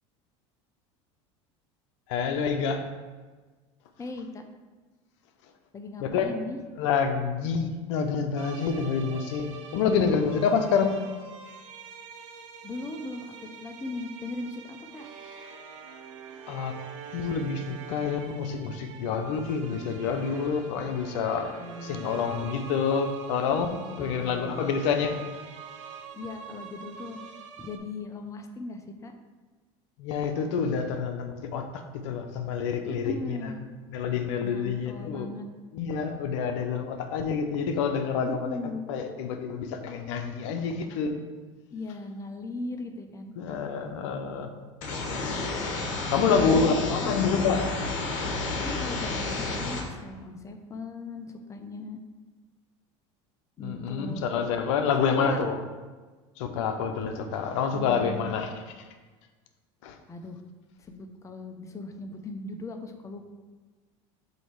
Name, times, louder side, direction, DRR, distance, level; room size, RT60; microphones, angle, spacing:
voice 1, 2.1-2.8 6.0-6.3 6.8-9.5 9.7-10.9 16.5-16.7 17.1-25.1 30.0-31.7 32.0-33.5 33.9-35.3 35.7-38.6 38.9-41.2 43.4-44.5 46.1-47.7 53.6-55.6 56.4-58.5 59.8-60.0, left 6 dB, 75° left, 6 dB, 0.7 m, -27 dB
voice 2, 4.0-4.4 5.7-6.6 10.6-11.0 12.6-13.3 13.6-15.1 21.6-22.1 23.9-24.7 26.1-27.2 27.6-29.1 33.0-33.6 34.4-35.5 38.2-38.9 41.7-43.3 46.2-47.2 48.6-52.0 53.6-54.2 55.1-55.4 57.7-58.3 60.1-60.4 60.8-63.3, left 2 dB, 20° left, 5 dB, 0.6 m, -38 dB
sound 1, 8.4-27.8, right 6 dB, 90° right, 0.7 m, -45 dB
sound 2, 44.8-49.8, left 3 dB, 60° left, 1.3 m, -31 dB
7.7 x 2.8 x 4.6 m, 1.3 s
supercardioid pair, 100°, 16 cm